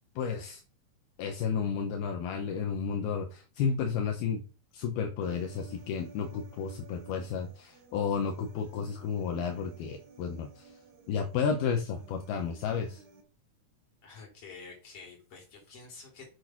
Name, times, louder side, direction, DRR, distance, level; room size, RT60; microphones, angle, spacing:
voice 1, 0.2-0.6 1.2-4.4 4.7-10.7 11.1-13.0, left 6 dB, 75° left, 3 dB, 3.0 m, -32 dB
Human voice, 5.2-13.2, right 5 dB, 90° right, 4.2 m, -55 dB
voice 2, 14.0-16.3, left 4 dB, 35° left, 0 dB, 4.7 m, -48 dB
8.8 x 6.8 x 6.0 m, 0.36 s
omnidirectional pair, 4.6 m